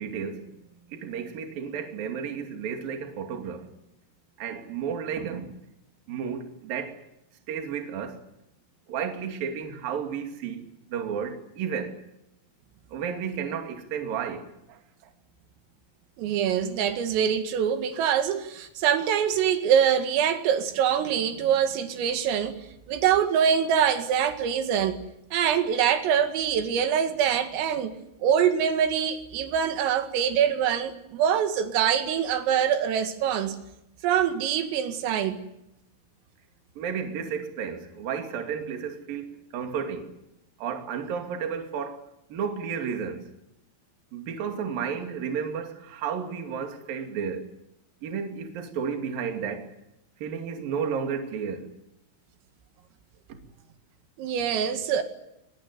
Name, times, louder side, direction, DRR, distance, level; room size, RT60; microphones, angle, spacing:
voice 1, 0.0-3.7 4.4-5.5 6.1-7.0 7.5-8.2 8.9-10.6 10.9-12.0 12.9-14.8 36.8-40.1 40.6-42.0 42.3-43.3 44.1-47.5 48.0-49.7 50.2-51.7, right 7 dB, 50° right, 3.9 m, -32 dB
voice 2, 16.2-22.6 22.9-25.0 25.3-27.9 28.2-33.6 34.0-35.4 54.2-55.0, right 8 dB, 85° right, 4.6 m, -24 dB
24.5 x 20.5 x 9.6 m
omnidirectional pair, 5.8 m